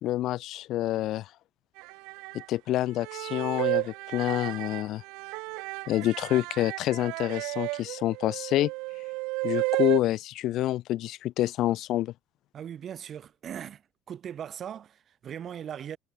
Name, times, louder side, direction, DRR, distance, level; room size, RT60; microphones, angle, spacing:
voice 1, 0.0-1.3 2.5-5.0 5.9-8.7 9.4-12.1, left 14 dB, 70° left, 2.2 m, -27 dB
sound 1, 1.8-2.5 3.0-10.0, right 26 dB, 85° right, 1.6 m, -33 dB
voice 2, 12.5-13.8 14.1-16.0, right 9 dB, 50° right, 7.5 m, -39 dB
cardioid pair, 100°, 0 cm